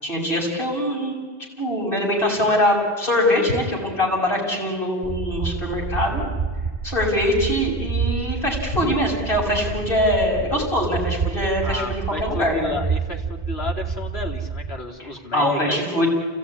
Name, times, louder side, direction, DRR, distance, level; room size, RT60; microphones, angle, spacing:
voice 1, 0.0-1.2 1.6-6.2 6.8-12.7 15.0-16.1, left 1 dB, 60° left, -3 dB, 6.6 m, -23 dB
sound 1, 5.0-14.8, right 5 dB, 40° right, 2.3 m, -28 dB
voice 2, 11.6-16.0, left 3 dB, 80° left, 0 dB, 2.9 m, -31 dB
28.5 x 16.5 x 9.7 m, 1.5 s
omnidirectional pair, 1.1 m